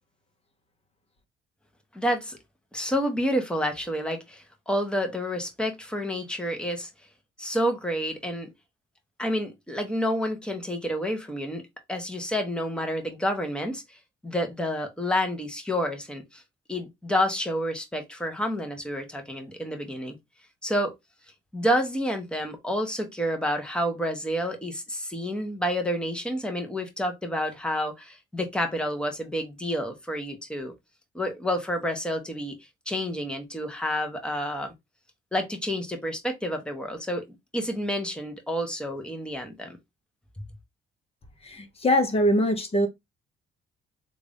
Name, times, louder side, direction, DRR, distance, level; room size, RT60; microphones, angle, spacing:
voice 1, 1.9-2.4 2.7-6.9 7.4-8.5 9.2-11.6 11.9-14.0 14.2-16.4 16.7-20.1 20.6-20.9 21.5-30.7 31.1-32.5 32.9-34.7 35.3-37.3 37.5-39.8, equal, 5° left, 1.1 m, -29 dB
voice 2, 41.4-42.9, equal, 30° left, 1.1 m, -23 dB
3.3 x 2.6 x 3.5 m
cardioid pair, 90°, 20 cm